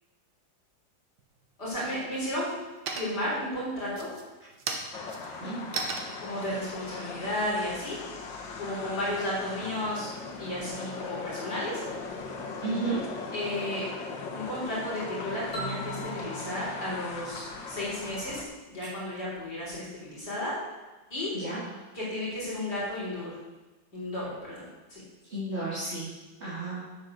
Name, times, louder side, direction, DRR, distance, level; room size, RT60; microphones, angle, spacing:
sound 1, 1.2-1.8 2.2-2.6 2.9-3.4 3.9-8.3, right 4 dB, 65° right, 1.8 m, -37 dB
voice 1, 1.6-2.5 2.9-4.1 6.2-8.0 8.6-10.1 10.4-11.8 13.3-13.9 14.3-18.4 18.7-20.5 21.1-21.3 21.9-23.3 23.9-25.0, left 1 dB, 60° left, -6 dB, 4.7 m, -33 dB
sound 2, 4.9-18.4, left 4 dB, 80° left, 2.0 m, -39 dB
voice 2, 12.6-13.1 21.3-21.6 25.3-26.1 26.4-26.8, right 2 dB, 35° right, -10 dB, 3.2 m, -32 dB
sound 3, 15.5-18.2, right 2 dB, 40° left, 2.8 m, -41 dB
9.2 x 7.9 x 6.5 m, 1.2 s
omnidirectional pair, 2.0 m